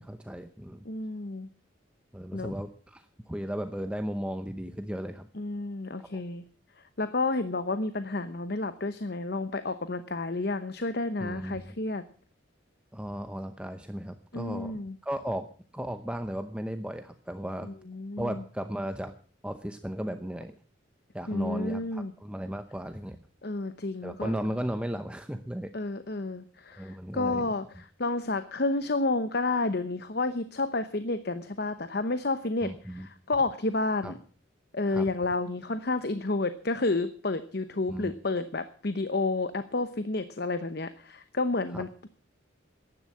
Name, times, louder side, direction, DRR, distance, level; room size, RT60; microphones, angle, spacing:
voice 1, 0.0-0.8 2.1-5.3 6.0-6.2 11.2-11.7 12.9-15.5 15.7-17.7 18.2-19.1 19.4-20.5 21.1-23.2 24.0-25.7 26.8-27.5 32.6-33.1 34.0-34.1 34.9-35.1 37.9-38.1 41.7-41.8, equal, 5° right, 8 dB, 0.7 m, -35 dB
voice 2, 0.8-1.5 2.3-2.5 5.3-6.4 7.0-12.0 14.3-14.9 17.6-18.4 21.3-22.1 23.4-24.3 25.7-34.2 34.7-42.1, left 2 dB, 50° left, 11 dB, 0.9 m, -30 dB
15.0 x 11.0 x 7.5 m, 0.43 s
head